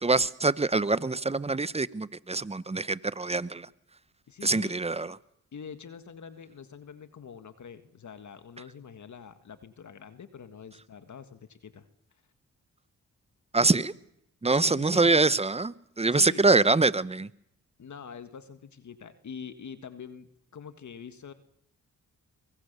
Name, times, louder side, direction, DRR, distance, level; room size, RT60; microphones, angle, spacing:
voice 1, 0.0-3.7 4.4-5.2 13.5-13.9 14.4-17.3, right 3 dB, 20° right, 18 dB, 1.0 m, -24 dB
voice 2, 4.3-4.8 5.5-11.9 14.5-15.2 16.1-16.5 17.8-21.3, left 7 dB, 60° left, 10 dB, 1.8 m, -45 dB
23.5 x 21.5 x 6.8 m, 0.75 s
supercardioid pair, 55°, 33 cm